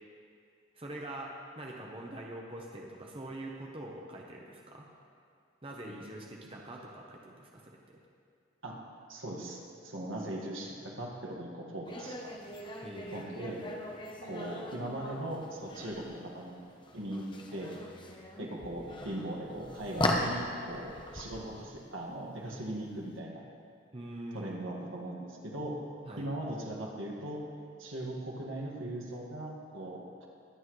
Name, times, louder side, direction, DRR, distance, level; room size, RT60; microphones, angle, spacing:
voice 1, 0.7-4.9 5.6-8.0 12.8-13.1 23.9-24.6 26.1-26.3, right 1 dB, 30° right, -1 dB, 1.0 m, -44 dB
voice 2, 9.1-12.3 13.1-13.6 14.2-16.6 16.9-17.2 17.5-17.7 18.4-23.4 24.3-25.8 26.2-27.4 27.8-30.3, right 1 dB, 85° right, -1 dB, 1.9 m, -39 dB
Ambiente ciudad noche, 11.8-23.1, left 1 dB, 25° left, 0.9 m, -39 dB
21.5 x 8.4 x 3.2 m, 2.3 s
head